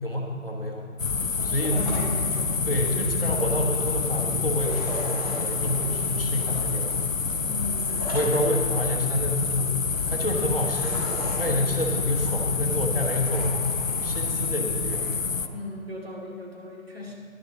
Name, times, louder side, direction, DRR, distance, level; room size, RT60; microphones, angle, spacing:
voice 1, 0.0-0.9 1.4-2.0 2.7-7.0 8.1-9.8 10.1-11.1 11.4-13.5 14.0-15.1, left 1 dB, 40° left, -1 dB, 1.2 m, -28 dB
sound 1, 1.0-15.5, left 5 dB, 65° left, 0.6 m, -28 dB
voice 2, 1.4-2.6 7.4-8.2 15.5-17.1, left 2 dB, 45° right, -3 dB, 2.4 m, -37 dB
sound 2, 1.5-15.5, equal, 15° right, 2.8 m, -41 dB
11.5 x 6.7 x 6.3 m, 2.1 s
figure-of-eight pair, 180°, 42 cm